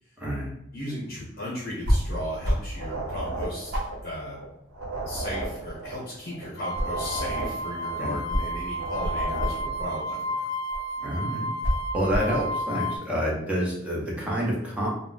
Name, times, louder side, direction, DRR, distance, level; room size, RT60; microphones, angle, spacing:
voice 1, 0.2-0.5 8.0-8.2 11.0-11.5 11.9-14.9, equal, 5° right, -4 dB, 0.7 m, -28 dB
voice 2, 0.7-3.7 4.0-4.4 5.1-10.5, left 1 dB, 50° left, -5 dB, 0.8 m, -36 dB
sound 1, 1.8-2.1 2.4-2.8 3.1-3.2 3.7-5.0 5.4-6.2 6.5-7.5 8.3-9.9 10.7-10.9 11.6-12.4, equal, 55° right, 0.9 m, -28 dB
sound 2, 2.7-10.1, right 2 dB, 90° right, 0.7 m, -35 dB
sound 3, 6.6-13.0, equal, 85° left, 0.4 m, -32 dB
2.3 x 2.0 x 3.8 m, 0.81 s
head